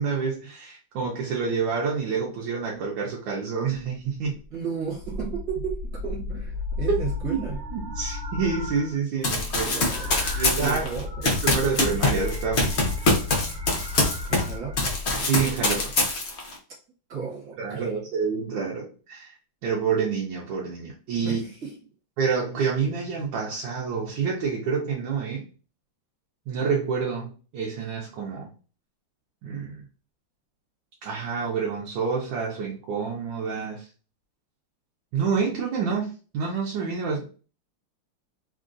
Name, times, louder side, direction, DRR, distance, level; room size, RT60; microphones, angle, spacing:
voice 1, 0.0-4.4 7.3-7.5 7.7-9.7 10.3-10.8 11.2-12.8 15.2-15.9 17.1-17.2 17.6-19.3 19.6-21.4 22.2-25.4 26.5-28.5 29.4-29.8 31.0-33.9 35.1-37.2, right 5 dB, 70° right, 1.3 m, -28 dB
sound 1, 4.4-4.5 4.9-9.0 9.2-14.9, left 2 dB, 35° right, 1.3 m, -33 dB
voice 2, 4.5-7.6 9.6-10.3 10.6-11.3 14.3-14.9 17.1-18.0 21.2-21.8, right 6 dB, 55° right, 1.5 m, -34 dB
Run, 9.2-14.5 14.8-16.5, left 2 dB, 75° left, 0.6 m, -24 dB
3.7 x 2.4 x 2.5 m
omnidirectional pair, 2.4 m